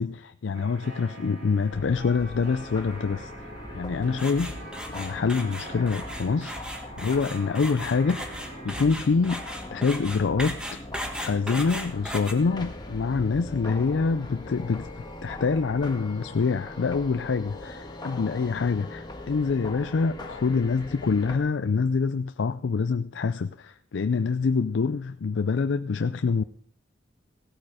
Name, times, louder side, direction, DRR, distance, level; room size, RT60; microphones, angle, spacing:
voice 1, 0.0-3.5 3.7-4.6 4.9-6.6 7.0-9.4 9.7-10.8 11.2-14.9 15.2-26.4, left 4 dB, 75° left, 0.4 m, -26 dB
sound 1, 0.5-8.8, right 2 dB, 65° right, 3.6 m, -44 dB
sound 2, 1.7-21.4, left 1 dB, 25° left, 1.6 m, -40 dB
sound 3, 4.2-12.3, equal, 5° right, 1.4 m, -37 dB
16.5 x 8.7 x 4.9 m
head